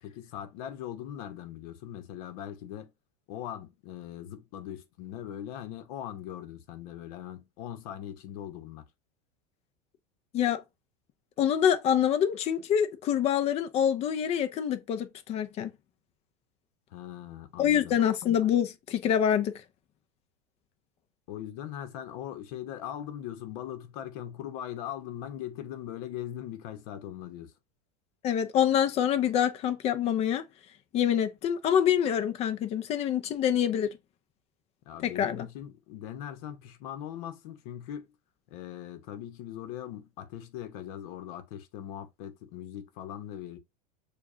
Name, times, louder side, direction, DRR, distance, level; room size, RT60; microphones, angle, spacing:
voice 1, 0.0-2.9 3.3-8.8 16.9-18.0 21.3-27.5 34.9-38.1 38.5-43.6, left 11 dB, 60° left, 1.0 m, -40 dB
voice 2, 11.4-15.7 17.6-19.5 28.2-30.5 30.9-33.9 35.0-35.5, left 9 dB, 30° left, 0.6 m, -26 dB
6.9 x 2.4 x 2.6 m
supercardioid pair, 150°, 21 cm